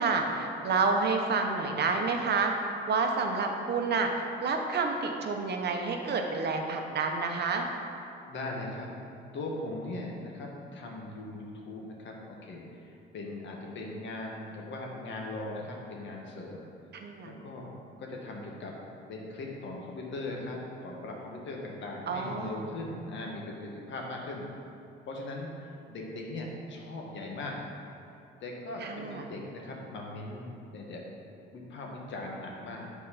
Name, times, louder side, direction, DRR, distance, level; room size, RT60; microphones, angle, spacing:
voice 1, 0.0-2.5 2.9-7.7 16.9-17.3 22.1-22.6 28.8-29.2, right 4 dB, 55° right, 3 dB, 0.9 m, -29 dB
voice 2, 8.3-8.9 9.3-16.7 17.2-17.7 18.0-18.8 19.1-24.4 25.1-25.5 25.9-27.6 28.4-31.0 31.5-33.0, left 2 dB, 70° left, -1 dB, 1.4 m, -39 dB
7.4 x 4.5 x 5.7 m, 2.6 s
cardioid pair, 90°, 20 cm